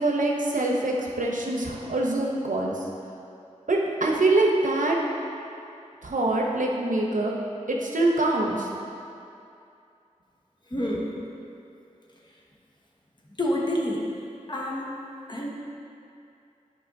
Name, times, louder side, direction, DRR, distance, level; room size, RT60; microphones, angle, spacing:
voice 1, 0.0-2.7 3.7-5.0 6.0-7.3 7.7-8.7, right 2 dB, 75° right, -1 dB, 0.8 m, -24 dB
voice 2, 10.7-11.1 13.4-14.1 14.5-14.9 15.3-15.5, left 1 dB, 35° left, -3 dB, 1.0 m, -28 dB
9.2 x 5.1 x 2.6 m, 2.6 s
wide cardioid pair, 60°, 13 cm